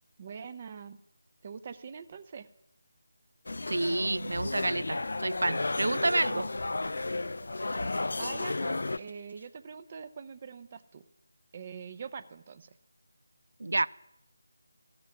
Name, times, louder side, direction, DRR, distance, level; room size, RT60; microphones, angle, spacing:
voice 1, 0.2-1.0 1.4-2.5 8.2-11.0 11.5-12.7, right 6 dB, 30° right, 0.7 m, -43 dB
sound 1, 3.5-9.0, left 2 dB, 55° left, 0.5 m, -33 dB
voice 2, 3.7-6.5 13.6-13.9, right 2 dB, 55° right, 0.5 m, -29 dB
sound 2, 6.5-9.5, right 2 dB, 80° right, 1.5 m, -52 dB
14.0 x 6.9 x 9.6 m
figure-of-eight pair, 160°, 0 cm